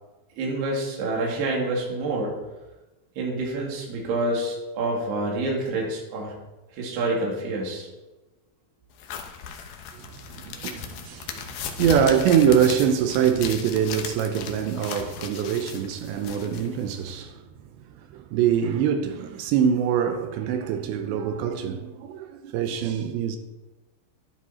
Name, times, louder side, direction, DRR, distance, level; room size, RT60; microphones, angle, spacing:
voice 1, 0.4-2.4 3.2-6.3 6.7-7.9, right 2 dB, 55° right, 4.4 m, -27 dB
sound 1, 9.0-17.2, left 7 dB, 90° left, 2.0 m, -37 dB
voice 2, 10.3-17.3 18.1-23.4, right 8 dB, 80° right, 2.7 m, -24 dB
12.5 x 11.0 x 4.3 m
omnidirectional pair, 5.8 m